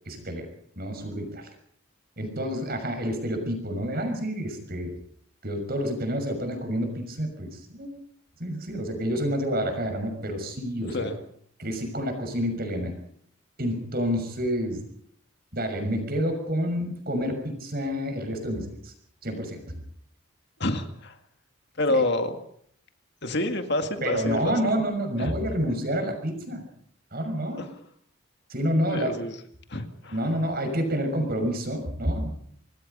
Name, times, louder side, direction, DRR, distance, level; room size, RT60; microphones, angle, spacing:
voice 1, 0.0-0.5 0.8-1.5 2.2-4.9 5.4-7.9 8.4-11.1 11.6-12.9 13.6-14.8 15.5-18.9 19.2-19.8 21.9-22.0 24.0-26.6 27.1-27.7 28.5-29.1 30.1-32.3, equal, 45° right, 6 dB, 6.3 m, -28 dB
voice 2, 20.6-21.2 21.8-22.3 23.2-24.7 25.2-25.3 27.6-27.7 28.9-29.4 29.7-30.2, left 2 dB, 50° left, 7 dB, 2.1 m, -28 dB
26.5 x 20.5 x 5.4 m, 0.64 s
head